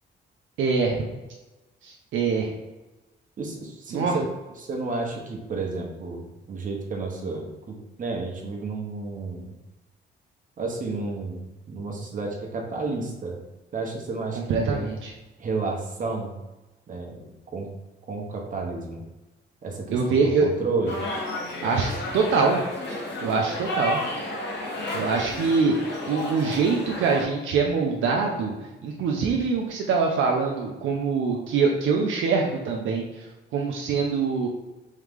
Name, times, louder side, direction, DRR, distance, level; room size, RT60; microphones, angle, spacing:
voice 1, 0.6-1.0 1.8-2.5 3.9-4.2 14.4-15.1 19.9-20.5 21.6-22.6 23.2-24.0 24.9-25.7 26.1-28.5 28.8-33.3 33.5-34.5, right 4 dB, 75° right, 0 dB, 0.6 m, -24 dB
voice 2, 3.4-4.3 4.6-6.2 6.5-9.5 10.6-13.4 13.7-14.4 14.7-14.9 15.4-16.3 16.9-17.2 17.5-17.7 18.1-19.0 19.6-21.0, right 3 dB, 40° right, 0 dB, 1.0 m, -31 dB
sound 1, 20.9-27.2, left 1 dB, 60° left, 1.2 m, -32 dB
3.7 x 3.2 x 3.5 m, 1.1 s
cardioid pair, 90°, 20 cm